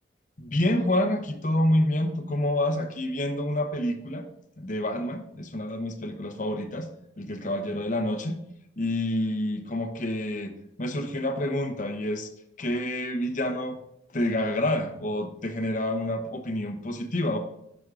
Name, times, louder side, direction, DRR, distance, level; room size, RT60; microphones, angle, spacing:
voice 1, 0.4-4.2 4.6-6.9 7.2-8.4 8.8-10.5 10.8-12.3 12.6-13.8 14.1-17.4, left 1 dB, 45° left, 6 dB, 0.9 m, -28 dB
9.5 x 6.1 x 2.5 m, 0.76 s
head